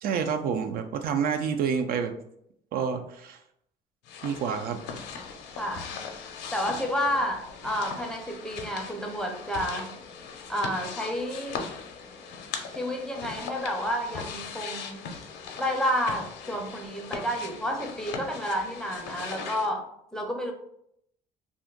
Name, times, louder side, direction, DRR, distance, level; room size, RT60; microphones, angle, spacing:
voice 1, 0.0-2.1 2.7-3.4 4.2-4.8, right 6 dB, 60° right, 7 dB, 0.4 m, -28 dB
sound 1, 4.0-19.7, left 5 dB, 80° left, 0.6 m, -39 dB
voice 2, 5.6-5.9 6.5-9.9 10.5-11.6 12.7-15.1 15.6-20.5, equal, 5° left, 2 dB, 0.5 m, -30 dB
2.5 x 2.4 x 3.7 m, 0.74 s
cardioid pair, 110°, 17 cm